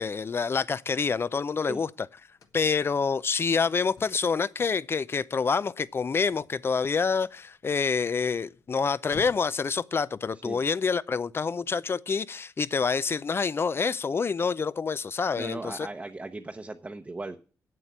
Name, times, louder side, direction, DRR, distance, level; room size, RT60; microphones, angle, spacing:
voice 1, 0.0-1.9 2.5-15.9, left 5 dB, 40° left, 0.5 m, -27 dB
Car / Slam, 2.1-9.7, left 5 dB, 65° left, 1.3 m, -54 dB
voice 2, 15.4-17.4, right 2 dB, 20° right, 0.8 m, -37 dB
8.1 x 7.7 x 7.2 m
cardioid pair, 85°, 6 cm